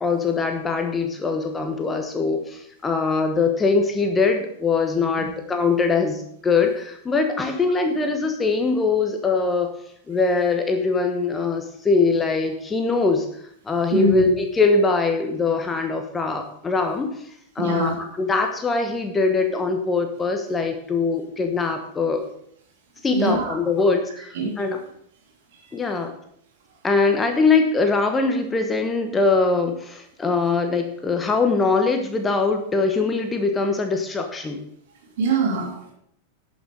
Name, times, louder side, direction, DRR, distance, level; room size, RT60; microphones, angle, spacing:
voice 1, 0.0-9.7 10.1-13.3 13.6-17.1 17.5-22.2 23.0-24.8 25.7-26.1 26.8-34.6, left 4 dB, 15° left, 5 dB, 1.2 m, -22 dB
voice 2, 13.9-14.3 17.6-18.0 23.1-23.5 24.3-24.5 35.2-35.9, right 2 dB, 55° right, 0 dB, 3.2 m, -22 dB
12.0 x 6.3 x 5.0 m, 0.68 s
figure-of-eight pair, 90°, 0 cm